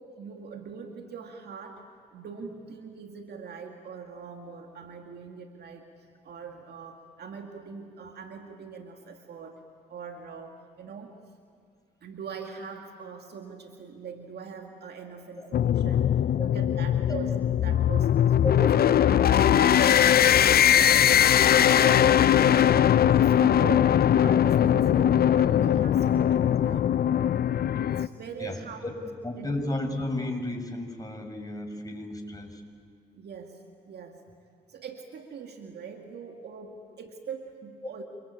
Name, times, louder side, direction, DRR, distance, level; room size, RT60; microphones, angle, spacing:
voice 1, 0.2-9.6 9.9-11.2 12.0-16.1 16.4-19.3 19.6-20.8 21.4-22.2 22.4-22.8 23.1-27.0 27.7-29.1 29.4-29.7 33.1-34.2 34.7-38.0, right 6 dB, 70° right, 4 dB, 2.2 m, -42 dB
sound 1, 15.5-28.1, left 10 dB, 60° left, 0.7 m, -21 dB
voice 2, 29.2-32.6, left 1 dB, 20° left, 3 dB, 6.8 m, -33 dB
28.5 x 22.5 x 8.9 m, 2.1 s
supercardioid pair, 45°, 18 cm